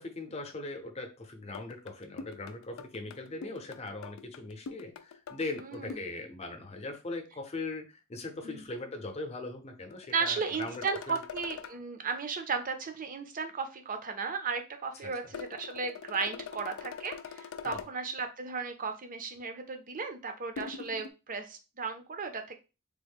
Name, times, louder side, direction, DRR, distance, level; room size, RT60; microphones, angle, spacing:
voice 1, 0.0-11.2 15.0-15.1 17.6-17.8, left 2 dB, 30° left, 4 dB, 0.7 m, -40 dB
sound 1, 1.5-6.1 9.9-11.8 15.3-17.9 20.6-21.1, left 6 dB, 75° left, 0.3 m, -43 dB
voice 2, 5.6-6.0 8.4-8.6 10.1-22.6, right 5 dB, 40° right, 6 dB, 0.6 m, -35 dB
3.6 x 2.1 x 3.5 m, 0.29 s
head